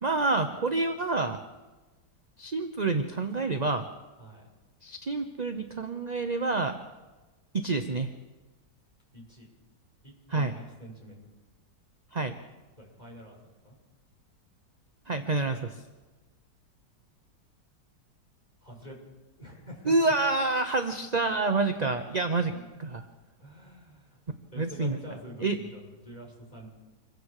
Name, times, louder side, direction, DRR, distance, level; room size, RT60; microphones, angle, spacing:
voice 1, 0.0-1.4 2.4-3.9 4.8-6.8 7.5-8.1 10.3-10.5 12.1-12.4 15.1-15.8 19.9-22.5 22.8-23.0 24.6-25.0 25.4-25.6, right 3 dB, 30° right, 7 dB, 0.9 m, -28 dB
voice 2, 9.1-9.5 10.0-11.2 12.8-13.4 13.6-13.8 18.6-19.0 19.4-20.1 22.4-22.7 23.4-24.2 24.5-26.7, equal, 25° left, -1 dB, 6.0 m, -46 dB
26.5 x 22.5 x 4.9 m, 1.2 s
omnidirectional pair, 1.9 m